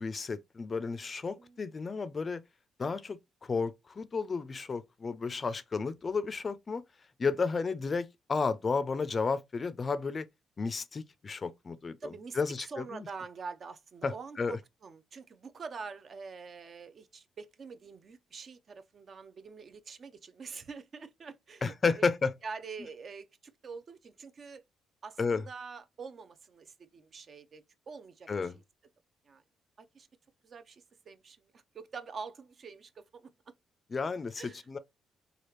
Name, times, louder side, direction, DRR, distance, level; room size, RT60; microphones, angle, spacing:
voice 1, 0.0-2.4 2.8-3.2 3.5-6.8 7.2-10.3 10.6-13.1 14.0-14.6 21.6-22.3 25.2-25.4 28.3-28.5 33.9-34.8, left 4 dB, 35° left, 0.4 m, -32 dB
voice 2, 12.0-22.1 22.4-24.6 25.0-28.6 29.3-29.4 29.8-30.1 30.4-33.3 34.4-34.6, right 5 dB, 50° right, 0.5 m, -45 dB
3.2 x 2.4 x 3.0 m
cardioid pair, 90°, 0 cm